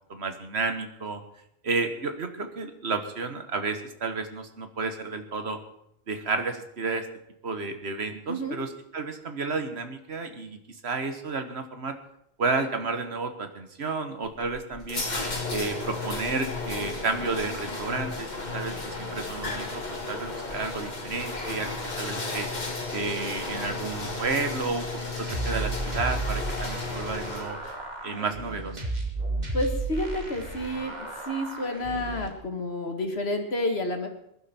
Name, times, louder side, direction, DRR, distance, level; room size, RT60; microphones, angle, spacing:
voice 1, 0.1-1.2 1.6-5.6 6.1-7.1 7.4-10.6 10.8-12.0 12.4-15.0 15.5-19.8 20.1-22.5 22.9-24.9 25.2-27.6 28.0-28.8, right 4 dB, 75° right, 7 dB, 1.7 m, -31 dB
sound 1, 14.3-27.8, left 3 dB, 40° left, 2.0 m, -34 dB
sound 2, 25.3-32.3, right 3 dB, 40° right, 2.4 m, -33 dB
voice 2, 29.5-31.0 31.3-34.1, left 1 dB, 70° left, 5 dB, 2.1 m, -29 dB
20.5 x 11.5 x 4.5 m, 0.77 s
omnidirectional pair, 1.1 m